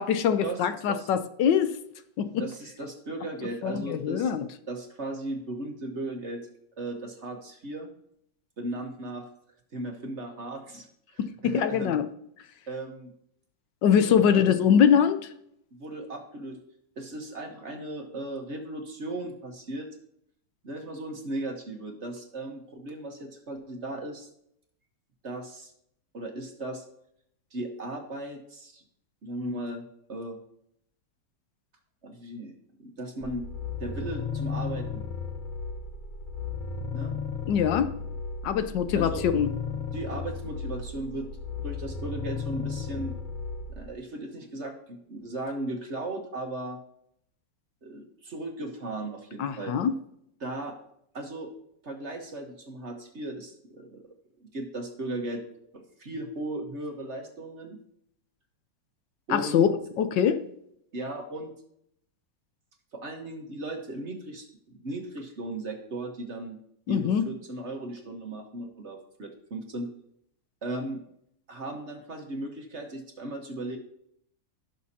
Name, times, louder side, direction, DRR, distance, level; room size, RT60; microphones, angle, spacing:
voice 1, 0.0-1.8 2.2-2.4 3.6-4.5 11.2-12.1 13.8-15.2 37.5-37.9 38.4-39.5 49.4-49.9 59.3-59.7 60.0-60.4 66.9-67.2, left 8 dB, 75° left, 10 dB, 1.3 m, -23 dB
voice 2, 2.4-4.3 4.7-6.5 6.8-7.9 8.6-9.3 9.7-12.0 12.7-13.1 14.0-14.5 15.7-16.6 17.0-19.9 20.6-24.3 25.2-25.7 26.1-26.8 27.5-28.8 29.2-29.8 30.1-30.4 32.0-32.5 32.8-33.4 33.8-35.1 36.9-37.2 38.9-39.2 39.9-41.3 41.6-43.1 43.7-46.8 47.8-49.7 50.4-50.7 51.1-51.5 51.8-54.1 54.4-55.4 55.7-57.8 59.3-59.7 60.9-61.5 62.9-66.6 66.9-69.9 70.6-71.0 71.5-73.8, right 2 dB, 40° right, 3 dB, 1.4 m, -36 dB
sound 1, 33.2-43.9, left 5 dB, 55° left, 0.5 m, -35 dB
16.0 x 6.4 x 2.8 m, 0.71 s
omnidirectional pair, 2.0 m